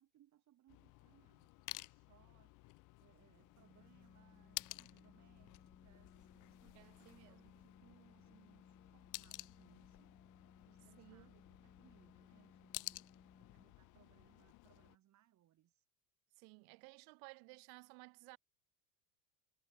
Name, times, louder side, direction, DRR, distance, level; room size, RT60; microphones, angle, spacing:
voice 1, 0.0-10.1 10.6-13.0 13.4-15.9, right 13 dB, 40° right, 3.5 m, -71 dB
sound 1, 0.7-15.0, left 23 dB, 45° left, 0.7 m, -53 dB
Organ, 3.4-14.0, left 5 dB, 20° left, 4.4 m, -65 dB
voice 2, 6.7-7.4 11.0-11.3 16.4-18.4, right 40 dB or more, 60° right, 1.2 m, -57 dB
hypercardioid pair, 100°, 42 cm